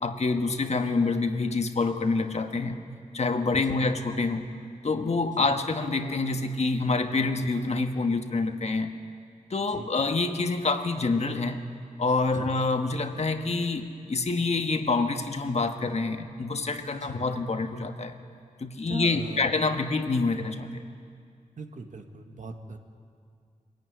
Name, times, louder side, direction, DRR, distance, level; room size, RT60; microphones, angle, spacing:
voice 1, 0.0-2.8 3.1-4.5 4.8-8.9 9.5-11.6 12.0-18.2 18.6-20.8, left 3 dB, 55° left, 6 dB, 1.5 m, -27 dB
voice 2, 18.9-19.5 21.6-22.8, right 3 dB, 65° right, 5 dB, 1.7 m, -41 dB
23.5 x 14.5 x 9.7 m, 2.3 s
wide cardioid pair, 75°, 14 cm